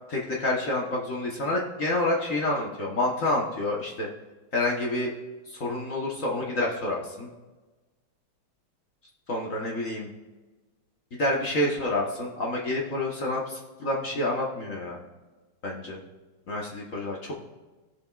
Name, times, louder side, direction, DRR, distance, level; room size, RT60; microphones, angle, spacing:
voice 1, 0.1-4.1 4.5-5.1 5.5-7.3 9.3-10.1 11.1-15.0 15.6-16.0 16.5-17.3, left 1 dB, 45° left, -2 dB, 1.3 m, -28 dB
18.5 x 7.0 x 2.4 m, 1.2 s
omnidirectional pair, 2.3 m